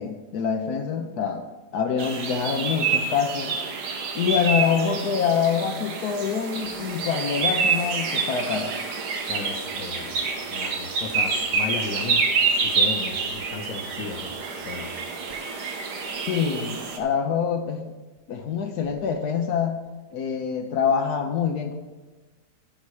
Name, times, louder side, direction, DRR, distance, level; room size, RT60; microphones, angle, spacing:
voice 1, 0.0-1.4 1.7-3.5 4.1-8.7 16.3-17.8 18.3-19.9 20.1-21.7, left 6 dB, 75° left, 4 dB, 1.3 m, -25 dB
sound 1, 2.0-17.0, right 4 dB, 85° right, 1.7 m, -27 dB
voice 2, 9.3-14.3 14.6-15.0 16.1-16.3, left 4 dB, 55° left, 6 dB, 1.2 m, -35 dB
14.0 x 5.6 x 4.8 m, 1.2 s
omnidirectional pair, 1.7 m